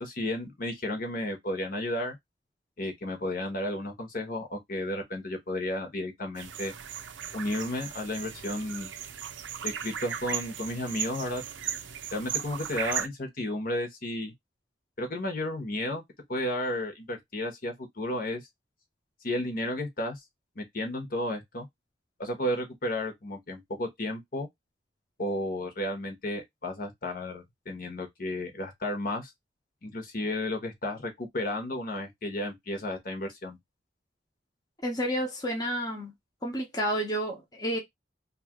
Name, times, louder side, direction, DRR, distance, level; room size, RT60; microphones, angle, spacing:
voice 1, 0.0-2.2 2.8-6.7 7.3-8.9 9.6-11.4 12.1-14.3 15.0-16.0 16.3-18.4 19.2-20.2 20.6-21.7 22.2-24.5 25.2-29.3 29.8-33.6, left 1 dB, 50° left, 1.0 m, -33 dB
sound 1, 6.3-13.1, right 9 dB, 80° right, 0.5 m, -36 dB
voice 2, 34.8-36.1 36.4-37.8, equal, 20° left, 0.8 m, -30 dB
2.9 x 2.4 x 2.8 m
head